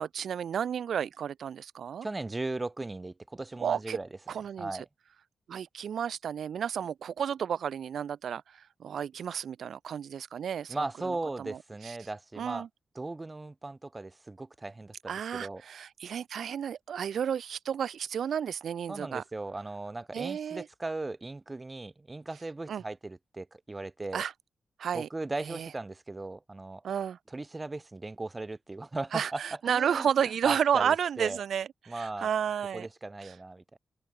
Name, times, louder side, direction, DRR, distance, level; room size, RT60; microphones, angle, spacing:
voice 1, 0.0-2.1 3.6-4.0 4.3-4.8 5.5-12.0 12.4-12.7 15.1-19.2 20.1-20.7 22.7-22.8 24.1-24.3 24.8-25.1 25.4-25.7 26.8-27.2 29.1-32.9 33.2-33.3, right 8 dB, 75° right, 0.6 m, -32 dB
voice 2, 2.0-4.1 4.6-4.8 10.7-12.6 12.9-15.6 18.9-24.2 24.9-26.8 27.3-30.1 30.4-31.4 31.9-32.3 32.7-33.8, right 2 dB, 20° right, 1.2 m, -37 dB
wide cardioid pair, 160°, 0 cm